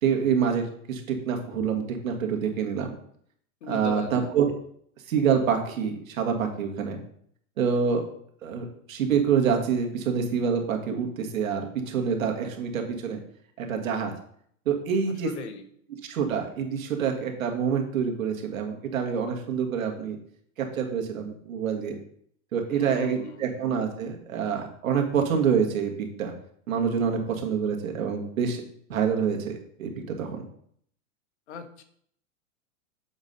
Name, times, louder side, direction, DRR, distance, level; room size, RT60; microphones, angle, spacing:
voice 1, 0.0-2.9 3.7-4.5 5.1-7.0 7.6-8.1 8.4-13.2 13.6-14.1 14.7-15.3 16.1-20.2 20.6-22.0 22.5-26.3 26.7-28.6 28.9-30.4, right 7 dB, 80° right, 3 dB, 1.8 m, -26 dB
voice 2, 3.6-4.3 15.1-15.7 22.7-23.6 31.5-31.8, left 6 dB, 55° left, 7 dB, 1.1 m, -39 dB
7.2 x 4.1 x 5.3 m, 0.64 s
supercardioid pair, 170°, 40 cm